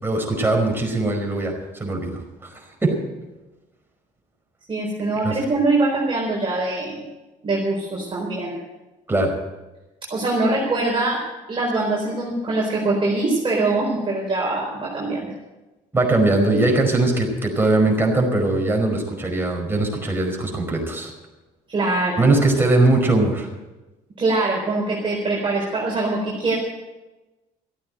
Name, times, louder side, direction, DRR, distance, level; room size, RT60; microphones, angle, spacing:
voice 1, 0.0-3.0 5.2-5.4 9.1-9.3 15.9-21.1 22.2-23.5, right 2 dB, 15° right, 1 dB, 5.0 m, -20 dB
voice 2, 4.7-7.0 7.4-8.6 10.1-11.2 11.5-15.3 21.7-22.3 24.2-26.6, right 2 dB, 35° right, -3 dB, 4.3 m, -23 dB
14.5 x 8.8 x 9.1 m, 1.1 s
supercardioid pair, 80°, 15 cm